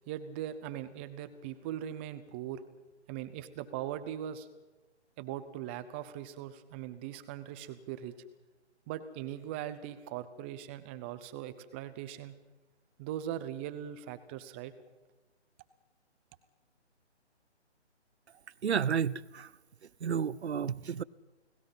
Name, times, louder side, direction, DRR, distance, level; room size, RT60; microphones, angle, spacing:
voice 1, 0.1-2.6 3.1-4.5 5.2-8.1 8.9-12.4 13.0-14.7, right 11 dB, 10° right, 0.6 m, -40 dB
voice 2, 18.6-19.5 20.0-21.0, right 7 dB, 70° right, 0.9 m, -31 dB
29.5 x 19.5 x 5.6 m
figure-of-eight pair, 150°, 34 cm